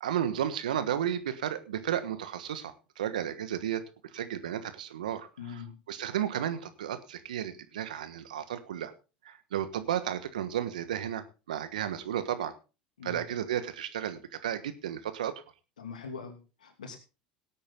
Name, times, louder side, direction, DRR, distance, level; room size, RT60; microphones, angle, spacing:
voice 1, 0.0-3.8 4.1-5.3 5.9-8.9 9.2-12.5 13.0-15.3, right 10 dB, 80° right, 12 dB, 1.3 m, -33 dB
voice 2, 5.4-5.8 13.0-13.2 15.8-17.0, left 6 dB, 85° left, 5 dB, 2.8 m, -42 dB
18.0 x 8.6 x 3.7 m, 0.31 s
hypercardioid pair, 75°, 4 cm